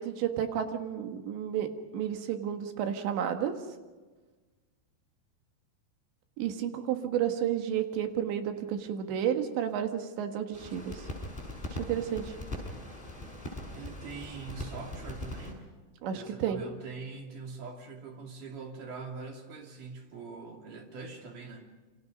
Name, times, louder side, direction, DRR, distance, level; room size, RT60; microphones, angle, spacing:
voice 1, 0.0-3.5 6.4-11.0 11.9-12.3 16.0-16.6, right 9 dB, 90° right, 6 dB, 3.9 m, -31 dB
sound 1, 10.5-15.5, left 1 dB, 10° left, 5.6 m, -40 dB
voice 2, 13.7-15.7 16.1-21.7, right 4 dB, 50° right, 2 dB, 3.9 m, -43 dB
28.0 x 26.0 x 5.4 m, 1.3 s
omnidirectional pair, 4.9 m